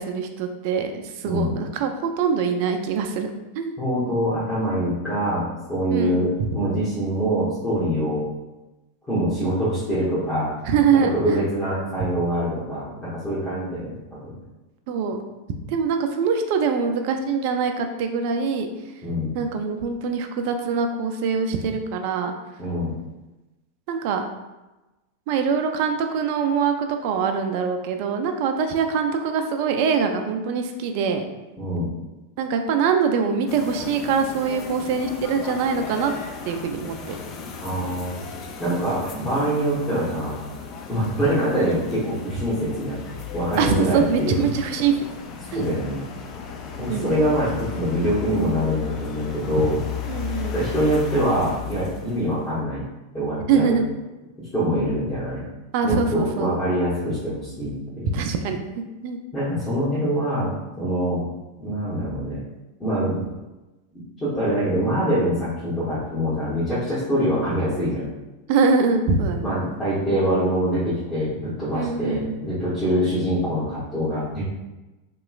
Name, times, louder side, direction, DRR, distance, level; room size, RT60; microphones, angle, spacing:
voice 1, 0.0-3.3 3.6-3.7 5.9-6.5 10.7-11.4 14.9-15.2 15.5-18.7 19.3-22.3 23.9-24.2 25.3-31.3 32.4-36.1 36.5-37.2 43.6-45.0 45.5-45.7 46.9-47.1 50.1-50.6 53.5-53.8 55.7-56.6 58.1-59.2 68.5-69.5 71.7-72.4, right 5 dB, 55° right, 5 dB, 0.4 m, -23 dB
voice 2, 3.8-8.2 9.1-10.5 11.1-13.9 14.2-14.3 19.0-19.3 22.6-22.9 31.6-31.9 37.6-38.2 38.6-40.3 40.9-43.0 43.3-44.4 45.5-46.0 46.8-49.7 50.5-52.8 53.1-53.8 54.5-55.4 55.8-58.1 59.3-60.5 60.8-61.2 61.6-62.4 62.8-63.2 63.9-68.0 69.4-74.4, equal, 20° left, -12 dB, 1.2 m, -24 dB
sound 1, 33.5-52.5, left 6 dB, 40° left, 0.4 m, -35 dB
3.0 x 2.9 x 2.4 m, 1.1 s
hypercardioid pair, 90°, 0 cm